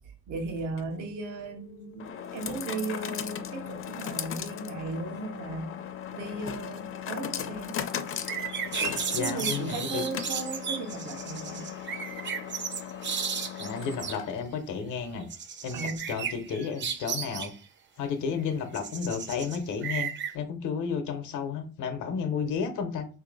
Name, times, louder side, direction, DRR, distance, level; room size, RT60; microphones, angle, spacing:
voice 1, 0.3-5.8 6.1-7.9 9.1-11.7 15.7-16.1, right 3 dB, 80° right, 4 dB, 0.9 m, -36 dB
sound 1, 0.6-14.6, left 8 dB, 45° left, 0.5 m, -38 dB
sound 2, 8.1-14.2 15.3-17.5 18.7-20.3, right 7 dB, 40° right, 0.5 m, -34 dB
voice 2, 9.1-10.0 13.5-15.3 15.6-15.8 16.1-17.5 18.0-23.1, left 6 dB, 85° left, 8 dB, 0.9 m, -32 dB
3.0 x 2.8 x 3.9 m, 0.36 s
cardioid pair, 90°, 30 cm